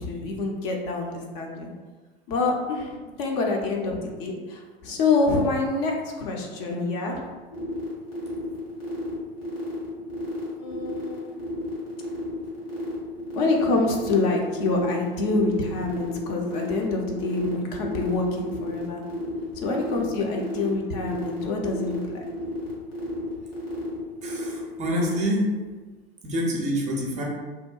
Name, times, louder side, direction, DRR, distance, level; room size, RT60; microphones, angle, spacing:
voice 1, 0.0-1.7 2.3-7.2 10.6-11.4 13.3-19.0 19.5-22.2, left 3 dB, 45° left, 0 dB, 0.5 m, -26 dB
sound 1, 7.5-25.2, right 1 dB, 75° left, 1.1 m, -35 dB
voice 2, 24.2-25.5 26.2-27.2, equal, 25° right, -2 dB, 0.5 m, -26 dB
2.7 x 2.1 x 2.3 m, 1.3 s
figure-of-eight pair, 90°, 30 cm